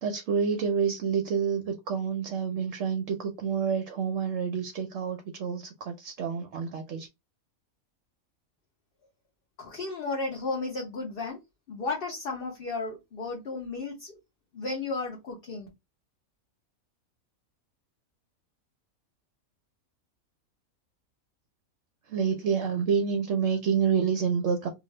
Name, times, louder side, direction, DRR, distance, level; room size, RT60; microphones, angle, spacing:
voice 1, 0.0-7.1 22.1-24.7, right 6 dB, 65° right, 0.8 m, -28 dB
voice 2, 9.6-11.4 11.7-14.2 14.5-15.7, left 3 dB, 50° left, 0.8 m, -34 dB
2.6 x 2.3 x 3.1 m
omnidirectional pair, 1.5 m